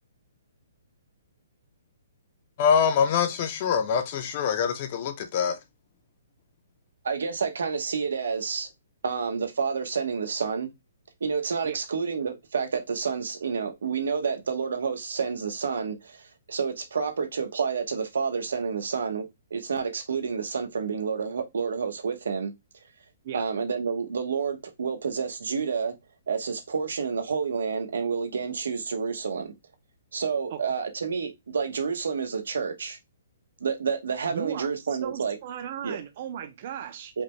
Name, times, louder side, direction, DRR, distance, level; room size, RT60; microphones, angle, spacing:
voice 1, 2.6-5.6, left 7 dB, 25° left, 0.5 m, -24 dB
voice 2, 7.0-8.7 9.0-10.7 11.2-22.5 23.3-25.9 26.3-29.5 30.1-33.0 33.6-35.4 35.8-36.0 37.1-37.2, right 5 dB, 90° right, 0.9 m, -29 dB
voice 3, 34.3-34.7 35.0-37.1, right 9 dB, 30° right, 0.4 m, -36 dB
4.9 x 2.1 x 3.1 m
hypercardioid pair, 180°, 0 cm